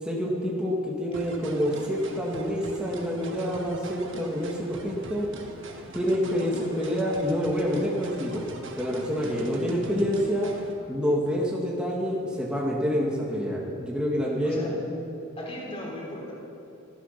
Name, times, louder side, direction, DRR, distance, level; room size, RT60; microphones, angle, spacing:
voice 1, 0.0-5.3 5.9-8.4 8.8-10.5 10.9-14.7, equal, 5° right, -4 dB, 1.9 m, -27 dB
sound 1, 1.1-10.7, right 2 dB, 60° right, 1.5 m, -43 dB
voice 2, 6.4-6.9 14.4-14.7 15.4-16.3, equal, 30° left, -3 dB, 3.6 m, -38 dB
15.0 x 13.0 x 5.8 m, 2.6 s
head